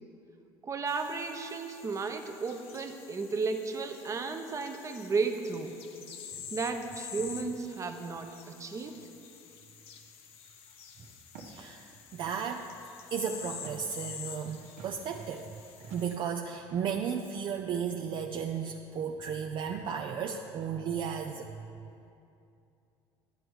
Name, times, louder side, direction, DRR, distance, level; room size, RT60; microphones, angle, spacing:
voice 1, 0.6-5.7 6.5-9.0 11.0-11.1, right 4 dB, 30° right, 6 dB, 0.9 m, -34 dB
sound 1, 0.9-16.1, left 7 dB, 60° left, 0.9 m, -48 dB
Walk footsteps, 11.3-11.6 12.2-12.6 13.6-14.0 14.8-15.0 15.8-16.3, right 4 dB, 75° right, 1.3 m, -49 dB
voice 2, 11.5-12.7 13.1-15.5 15.8-21.5, right 7 dB, 45° right, 3 dB, 0.5 m, -34 dB
11.5 x 7.7 x 4.8 m, 2.6 s
supercardioid pair, 100°, 11 cm